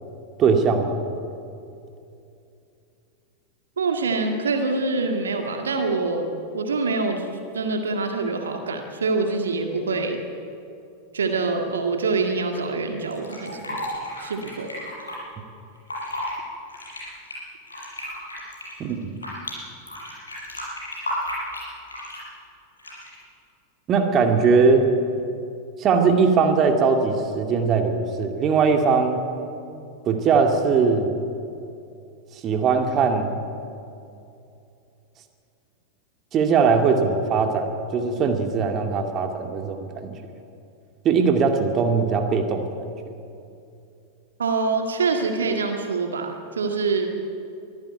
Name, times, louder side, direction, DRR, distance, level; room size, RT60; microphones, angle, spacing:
voice 1, 0.4-1.0 18.8-19.2 23.9-24.9 25.8-29.2 30.1-31.2 32.4-33.4 36.3-40.1 41.0-42.7, right 5 dB, 30° right, 4 dB, 2.3 m, -20 dB
voice 2, 3.8-6.3 6.5-7.3 7.5-10.2 11.1-13.9 14.2-14.7 44.4-47.1, right 3 dB, 70° right, 4 dB, 1.9 m, -25 dB
Fill (with liquid), 13.1-15.1 15.7-16.3 16.7-19.5 19.9-22.3 22.8-23.2, left 1 dB, 75° left, 7.4 m, -33 dB
23.5 x 14.5 x 9.3 m, 2.6 s
figure-of-eight pair, 90°, 0 cm